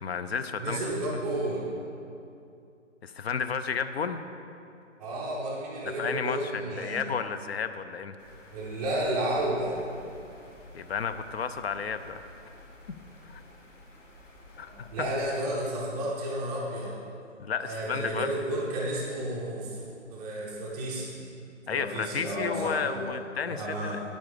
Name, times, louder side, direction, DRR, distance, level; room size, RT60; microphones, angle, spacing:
voice 1, 0.0-0.8 3.0-4.2 6.0-8.1 10.7-12.2 13.3-13.4 14.6-14.9 17.4-18.3 21.7-24.0, left 6 dB, 55° left, 11 dB, 0.7 m, -32 dB
voice 2, 0.6-1.7 5.0-7.0 8.5-9.8 14.7-16.9 17.6-21.1 21.7-23.1 23.4-24.0, right 1 dB, 5° right, -8 dB, 0.5 m, -32 dB
sound 1, 8.2-15.6, left 1 dB, 80° left, 2.8 m, -52 dB
9.6 x 8.9 x 5.1 m, 2.5 s
hypercardioid pair, 150°, 38 cm